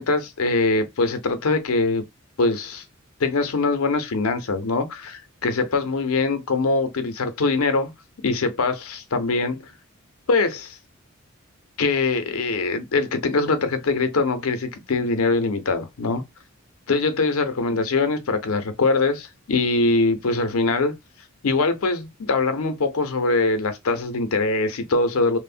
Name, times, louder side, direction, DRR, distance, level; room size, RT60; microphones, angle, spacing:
voice 1, 0.0-2.0 2.4-2.8 3.2-7.9 8.2-9.7 10.3-10.8 11.8-16.2 16.9-20.9 21.4-25.4, left 3 dB, 80° left, 0.6 m, -22 dB
3.0 x 2.0 x 2.4 m
head